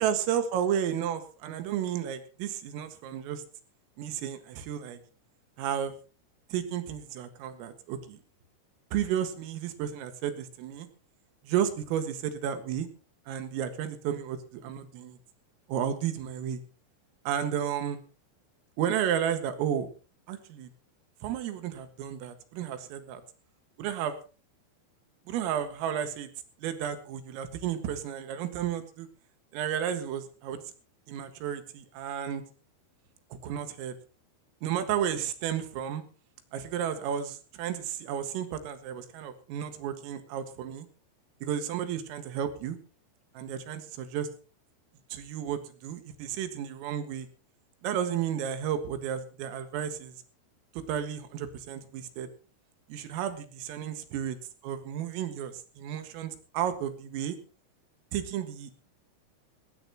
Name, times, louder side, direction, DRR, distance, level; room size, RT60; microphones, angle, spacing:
voice 1, 0.0-3.4 4.0-5.0 5.6-5.9 6.5-8.2 8.9-10.9 11.5-12.9 13.3-15.2 15.7-16.6 17.3-18.0 18.8-19.9 20.3-20.7 21.2-23.2 23.8-24.2 25.3-26.3 26.6-29.1 29.5-30.6 31.1-32.4 33.3-34.0 34.6-36.0 36.5-40.9 41.4-42.8 43.4-44.3 45.1-47.3 47.8-50.1 50.9-52.3 52.9-54.4 54.6-57.4 58.1-58.7, right 9 dB, 90° right, 8 dB, 4.3 m, -32 dB
18.5 x 18.0 x 3.0 m, 0.35 s
omnidirectional pair, 5.9 m